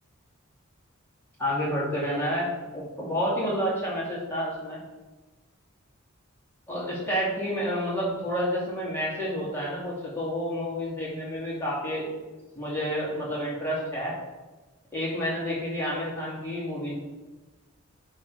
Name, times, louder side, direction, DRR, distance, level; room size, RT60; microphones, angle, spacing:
voice 1, 1.4-4.8 6.7-12.1 12.5-14.1 14.9-17.0, equal, 10° left, -8 dB, 2.7 m, -29 dB
9.4 x 3.2 x 5.4 m, 1.2 s
head